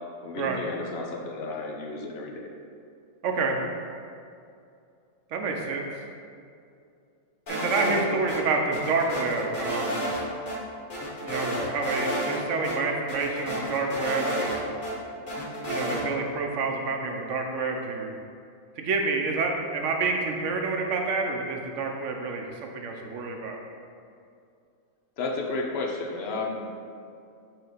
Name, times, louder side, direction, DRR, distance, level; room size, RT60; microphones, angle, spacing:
voice 1, 0.2-2.5 7.8-7.9 25.2-26.7, left 3 dB, 55° left, 1 dB, 0.8 m, -32 dB
voice 2, 3.2-3.6 5.3-5.8 7.5-10.0 11.2-14.6 15.7-18.1 18.8-23.6, right 4 dB, 65° right, 2 dB, 1.0 m, -28 dB
sound 1, 7.5-8.4 8.7-10.2 10.5-10.6 10.9-12.4 12.6-12.7 13.1-14.9 15.3-16.0, right 1 dB, 40° left, 1.1 m, -30 dB
6.0 x 3.3 x 5.0 m, 2.5 s
omnidirectional pair, 1.5 m